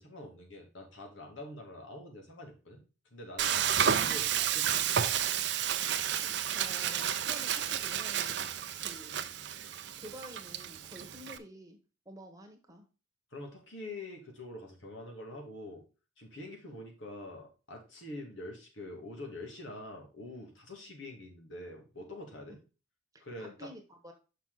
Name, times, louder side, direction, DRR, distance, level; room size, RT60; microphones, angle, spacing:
voice 1, 0.0-2.8 3.1-5.0 8.7-8.9 13.3-15.8 16.2-22.6 23.2-23.7, left 1 dB, 85° left, 1 dB, 2.3 m, -45 dB
Frying (food), 3.4-11.4, right 9 dB, 65° right, 0.6 m, -31 dB
voice 2, 6.2-8.4 8.8-9.3 10.0-11.8 12.0-12.9 23.4-24.1, equal, 20° right, 4 dB, 1.2 m, -50 dB
5.9 x 5.8 x 4.0 m, 0.32 s
head